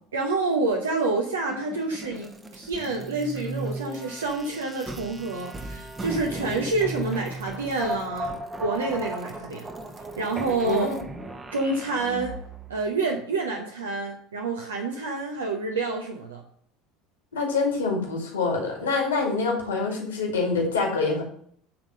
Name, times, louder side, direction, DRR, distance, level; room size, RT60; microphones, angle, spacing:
voice 1, 0.1-9.6 10.2-10.9 11.5-12.4 12.7-16.4, right 3 dB, 75° right, 2 dB, 0.8 m, -28 dB
sound 1, 1.5-12.8, right 2 dB, 20° right, 0.9 m, -36 dB
voice 2, 10.6-11.1 17.3-21.2, left 4 dB, 75° left, 0 dB, 2.1 m, -26 dB
8.8 x 3.8 x 5.3 m, 0.63 s
figure-of-eight pair, 70°, 0 cm